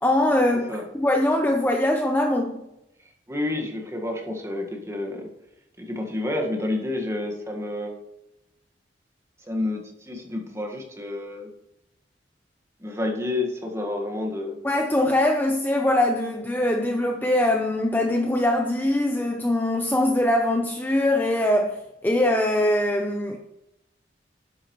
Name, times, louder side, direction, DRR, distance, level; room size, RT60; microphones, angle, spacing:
voice 1, 0.0-2.6 14.6-21.8 22.0-23.4, left 1 dB, 10° left, 0.6 m, -22 dB
voice 2, 3.3-5.3 5.8-7.9 9.4-11.5 12.8-14.6, left 2 dB, 15° right, 1.6 m, -29 dB
11.0 x 8.9 x 3.1 m
head